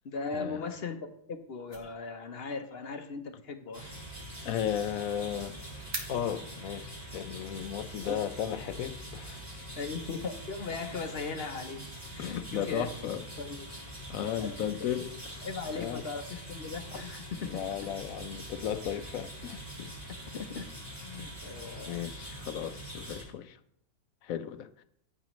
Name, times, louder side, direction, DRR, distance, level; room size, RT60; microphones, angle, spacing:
voice 1, 0.0-3.9 8.0-8.1 9.8-11.8 12.1-12.9 13.4-13.7 14.0-15.1 15.4-17.5 20.3-20.7 21.0-22.0, left 4 dB, 50° left, 0.9 m, -38 dB
sound 1, 1.1-6.9, right 2 dB, 65° right, 2.1 m, -48 dB
sound 2, 3.7-23.2, right 1 dB, 30° right, 3.4 m, -44 dB
voice 2, 4.4-5.6 6.1-9.7 12.2-13.2 14.1-15.5 15.7-16.0 17.4-19.9 21.9-23.6 24.2-24.8, left 9 dB, 75° left, 1.0 m, -35 dB
14.5 x 6.7 x 3.1 m
omnidirectional pair, 1.5 m